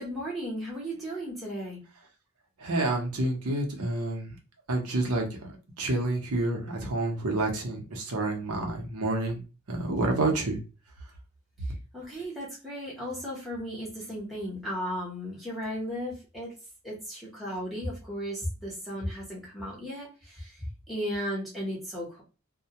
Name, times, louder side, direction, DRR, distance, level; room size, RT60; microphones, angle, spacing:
voice 1, 0.0-1.8 11.9-16.5 16.8-22.2, equal, ahead, -6 dB, 0.8 m, -35 dB
voice 2, 2.6-4.3 4.7-5.5 5.8-9.4 9.7-10.6, right 2 dB, 85° right, 2 dB, 0.7 m, -28 dB
2.2 x 2.1 x 2.8 m, 0.32 s
head